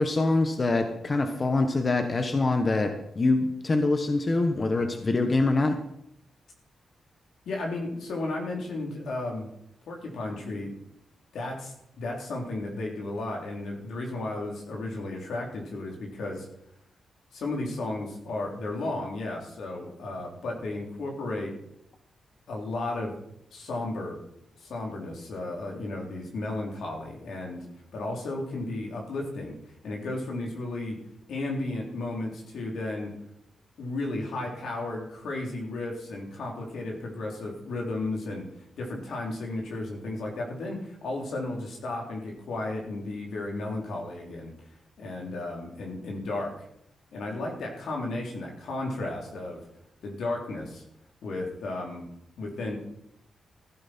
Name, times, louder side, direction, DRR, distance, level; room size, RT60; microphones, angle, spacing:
voice 1, 0.0-5.8, left 2 dB, 35° left, 6 dB, 1.3 m, -24 dB
voice 2, 7.4-9.5 9.9-10.7 11.3-16.5 17.3-21.6 22.5-23.2 23.5-24.2 24.6-27.7 27.9-29.5 29.8-31.0 31.3-33.1 33.8-38.5 38.8-44.5 45.0-46.6 47.1-49.6 50.0-50.8 51.2-52.1 52.4-52.8, left 2 dB, 80° left, 0 dB, 3.4 m, -34 dB
15.0 x 12.0 x 4.4 m, 0.77 s
cardioid pair, 95°, 0 cm